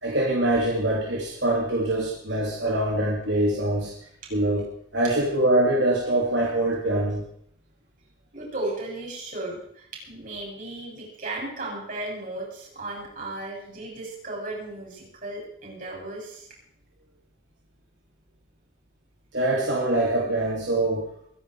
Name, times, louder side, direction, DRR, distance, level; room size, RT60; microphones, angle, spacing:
voice 1, 0.0-3.9 4.3-7.2 19.3-21.1, right 1 dB, 65° right, -2 dB, 2.7 m, -24 dB
voice 2, 8.3-16.5, right 2 dB, 45° right, -2 dB, 7.7 m, -35 dB
23.5 x 10.5 x 4.9 m, 0.68 s
head